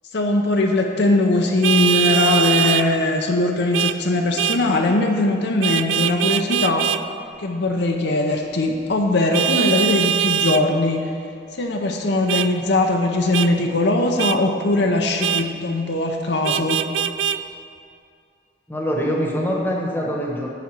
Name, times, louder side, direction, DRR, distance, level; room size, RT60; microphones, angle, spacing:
voice 1, 0.1-6.9 7.4-11.1 11.5-16.8, left 2 dB, 65° left, 2 dB, 0.7 m, -20 dB
Vehicle horn car horn honking, 1.6-2.9 3.7-4.0 4.4-4.6 5.6-7.0 9.3-10.6 12.3-12.5 13.3-13.5 14.2-14.4 15.2-15.5 16.4-17.4, right 9 dB, 80° right, 0.3 m, -21 dB
voice 2, 18.7-20.5, equal, 10° left, -2 dB, 1.2 m, -24 dB
10.5 x 4.2 x 7.6 m, 2.4 s
head